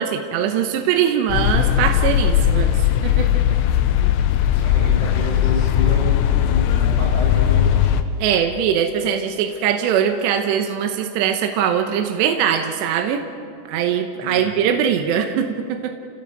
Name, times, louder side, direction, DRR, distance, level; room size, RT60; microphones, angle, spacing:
voice 1, 0.0-3.3 8.2-13.2 13.7-15.9, right 8 dB, 75° right, 4 dB, 3.1 m, -21 dB
sound 1, 1.3-8.0, left 10 dB, 85° left, 3.3 m, -18 dB
voice 2, 3.8-8.3 14.2-14.6, left 1 dB, 15° left, -5 dB, 8.0 m, -31 dB
30.0 x 17.0 x 6.7 m, 2.4 s
omnidirectional pair, 5.3 m